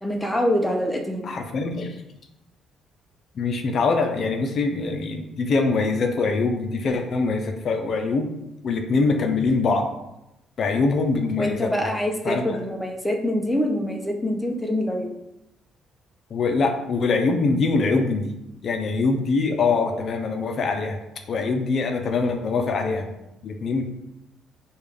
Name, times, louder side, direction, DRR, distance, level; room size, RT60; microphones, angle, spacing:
voice 1, 0.0-1.3 11.4-15.1, left 1 dB, 5° left, 1 dB, 0.6 m, -25 dB
voice 2, 1.2-2.0 3.4-8.3 8.6-9.9 10.6-11.7 12.2-12.5 16.3-18.3 18.6-21.0 21.3-23.1 23.4-23.8, left 3 dB, 55° left, 4 dB, 0.5 m, -23 dB
5.1 x 2.3 x 3.3 m, 0.89 s
cardioid pair, 90°, 0 cm